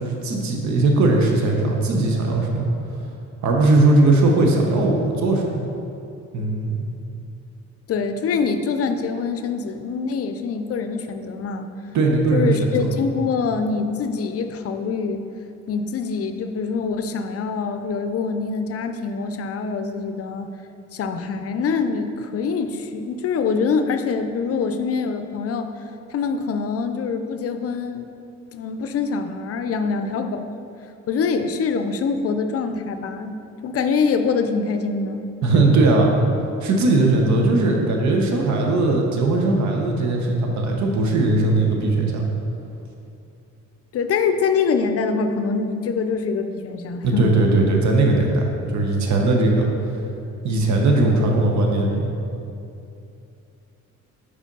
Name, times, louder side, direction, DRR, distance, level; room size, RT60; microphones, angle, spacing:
voice 1, 0.0-2.7 3.4-5.6 6.3-6.9 11.9-12.9 35.4-36.1 36.6-42.2 47.0-49.7 50.4-52.1, right 2 dB, 70° right, 1 dB, 0.9 m, -19 dB
voice 2, 7.9-11.7 12.3-15.2 15.7-20.5 20.9-25.7 26.1-28.1 28.5-30.4 31.1-35.3 35.5-35.8 43.9-47.4, left 5 dB, 50° left, 8 dB, 0.5 m, -24 dB
5.0 x 4.3 x 5.3 m, 2.7 s
cardioid pair, 90°, 30 cm